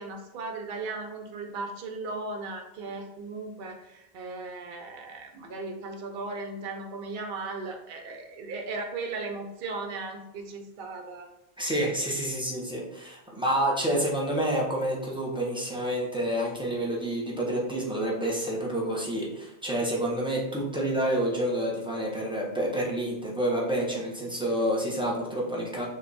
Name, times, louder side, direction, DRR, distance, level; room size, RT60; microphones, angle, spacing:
voice 1, 0.0-11.3, right 3 dB, 65° right, 3 dB, 0.7 m, -37 dB
voice 2, 11.6-25.9, right 1 dB, 5° right, -4 dB, 0.6 m, -28 dB
3.5 x 2.2 x 3.9 m, 0.92 s
omnidirectional pair, 1.1 m